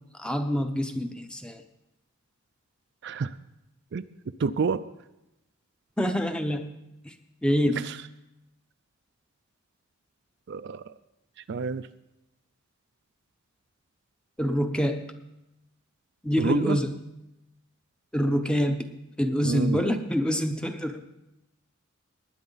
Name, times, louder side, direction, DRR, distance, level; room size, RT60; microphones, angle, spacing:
voice 1, 0.1-1.6 6.0-6.7 7.0-7.1 7.4-7.9 14.4-15.1 16.2-17.0 18.1-18.8 19.2-21.0, equal, 5° left, 7 dB, 0.8 m, -26 dB
voice 2, 4.4-4.8 10.5-10.8 11.5-11.9 16.4-16.8 19.4-19.8, right 4 dB, 55° right, 11 dB, 0.4 m, -28 dB
19.0 x 10.0 x 4.0 m, 0.92 s
head